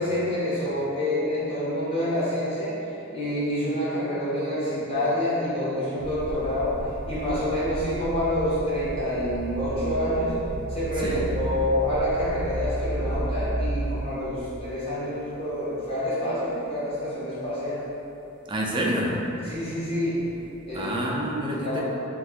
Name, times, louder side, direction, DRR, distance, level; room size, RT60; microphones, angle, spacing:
voice 1, 0.0-2.7 3.1-6.8 7.1-10.3 10.7-17.8 19.4-20.2 20.6-21.2 21.5-21.8, left 1 dB, 30° left, -10 dB, 0.9 m, -27 dB
sound 1, 6.0-14.8 15.5-15.9 16.5-16.6 20.1-20.8, right 1 dB, 65° right, 0.8 m, -33 dB
voice 2, 18.5-19.2 20.7-21.8, right 1 dB, 25° right, -2 dB, 0.3 m, -28 dB
2.5 x 2.4 x 3.5 m, 3.0 s
head